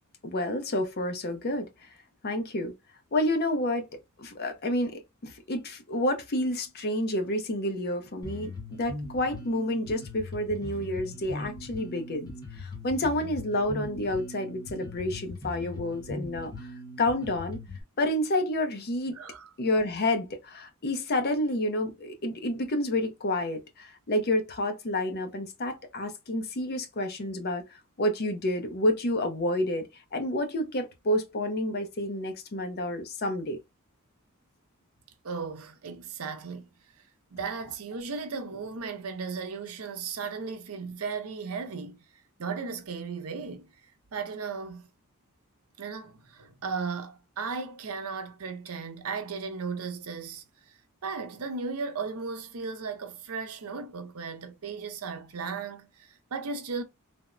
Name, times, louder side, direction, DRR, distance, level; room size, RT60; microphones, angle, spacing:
voice 1, 0.2-1.9 2.2-2.7 3.1-3.9 4.2-16.7 17.0-17.6 18.0-19.2 19.6-33.6, left 1 dB, 45° left, 0.6 m, -29 dB
Bass guitar, 8.2-17.8, left 2 dB, 20° left, 1.0 m, -40 dB
voice 2, 19.1-19.5 35.2-36.7 37.3-42.0 42.4-43.7 44.1-44.9 45.8-50.8 51.0-56.8, right 5 dB, 85° right, 0.6 m, -36 dB
3.3 x 2.0 x 2.5 m
head